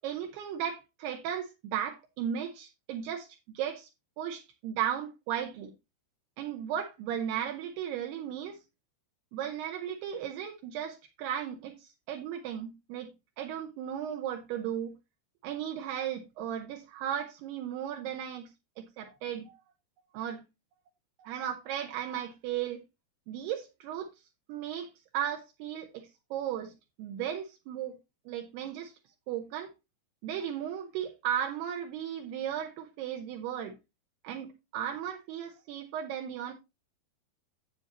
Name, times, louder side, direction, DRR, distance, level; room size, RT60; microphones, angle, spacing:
voice 1, 0.0-3.3 3.5-3.9 4.2-5.7 6.4-8.6 9.3-13.1 13.4-14.9 15.4-18.5 18.8-19.6 20.1-20.4 21.2-22.8 23.3-24.1 24.5-27.9 28.3-28.9 29.3-29.7 30.2-33.8 34.2-36.5, right 9 dB, 80° right, 2.9 m, -35 dB
9.8 x 8.0 x 2.9 m
omnidirectional pair, 4.8 m